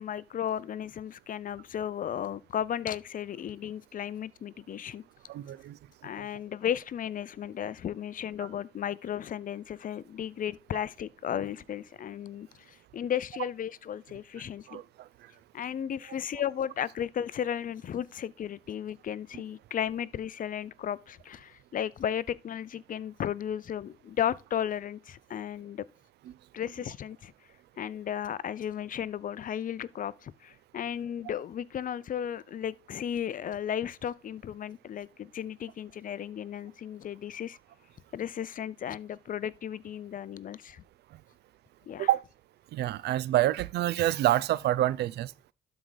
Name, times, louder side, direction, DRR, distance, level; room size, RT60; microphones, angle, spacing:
voice 1, 0.0-5.0 6.0-14.8 15.5-25.8 26.5-27.3 27.8-37.6 38.1-40.8 41.9-42.1, left 9 dB, 55° left, 0.6 m, -34 dB
voice 2, 5.3-5.8 6.2-6.3 14.7-15.3 42.0-42.2 42.7-45.3, right 14 dB, 80° right, 0.5 m, -27 dB
12.0 x 4.8 x 4.0 m
cardioid pair, 90°, 17 cm